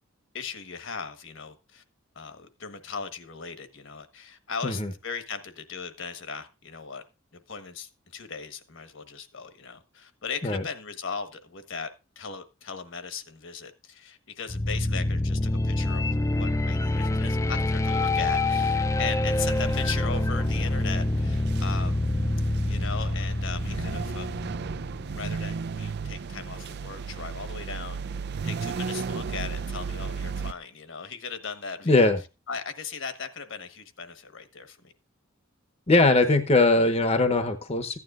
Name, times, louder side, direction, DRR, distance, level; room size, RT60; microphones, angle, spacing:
voice 1, 0.3-1.8 2.1-7.0 7.3-11.9 12.1-16.1 16.3-22.0 22.7-24.4 25.1-28.0 28.4-32.1 32.5-34.9, left 5 dB, 65° left, 1.3 m, -38 dB
sound 1, 14.5-25.4, left 2 dB, 15° left, 0.4 m, -26 dB
sound 2, 19.2-30.5, right 5 dB, 55° right, 0.4 m, -35 dB
voice 2, 31.9-32.2 35.9-38.0, left 2 dB, 30° left, 0.9 m, -21 dB
15.0 x 9.6 x 2.5 m
head